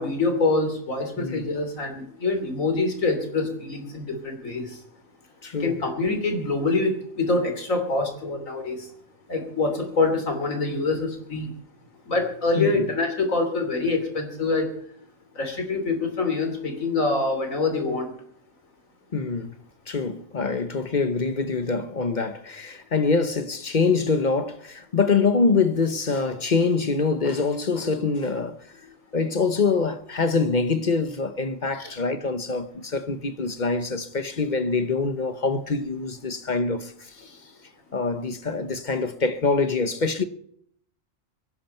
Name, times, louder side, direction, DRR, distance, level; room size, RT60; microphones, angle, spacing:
voice 1, 0.0-4.6 5.6-8.8 9.3-11.5 12.1-14.7 15.4-18.1 31.8-32.0, left 3 dB, 85° left, 3.4 m, -25 dB
voice 2, 5.4-5.8 12.6-12.8 19.1-19.6 19.9-28.6 29.1-37.4 37.9-40.2, left 4 dB, 40° left, 1.0 m, -25 dB
23.5 x 11.0 x 4.4 m
omnidirectional pair, 1.4 m